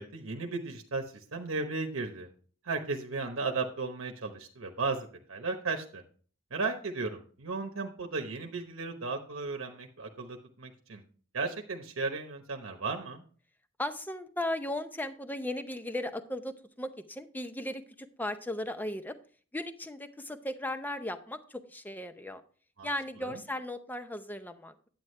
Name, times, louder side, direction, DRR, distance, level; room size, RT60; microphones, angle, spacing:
voice 1, 0.0-2.3 2.6-6.0 6.5-11.0 11.3-13.2 22.8-22.9 23.2-23.4, right 4 dB, 75° right, 3 dB, 0.9 m, -35 dB
voice 2, 13.8-19.1 19.5-22.4 22.8-24.9, left 1 dB, 10° left, 10 dB, 0.6 m, -36 dB
9.4 x 8.6 x 3.2 m, 0.42 s
head